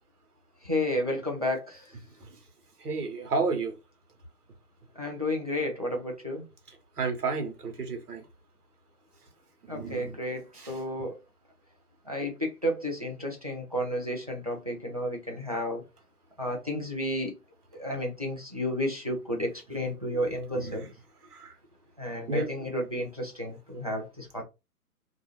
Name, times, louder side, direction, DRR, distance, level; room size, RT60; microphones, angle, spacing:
voice 1, 0.6-1.9 5.0-6.5 9.7-11.2 12.1-15.8 16.4-17.3 17.7-20.9 22.0-24.4, left 1 dB, 30° right, 0.4 m, -32 dB
voice 2, 2.8-3.7 7.0-8.2 9.7-10.1 10.6-10.7 20.5-20.7 21.3-21.5 22.3-22.5, right 4 dB, 70° right, 1.2 m, -31 dB
2.6 x 2.4 x 3.0 m
figure-of-eight pair, 140°, 47 cm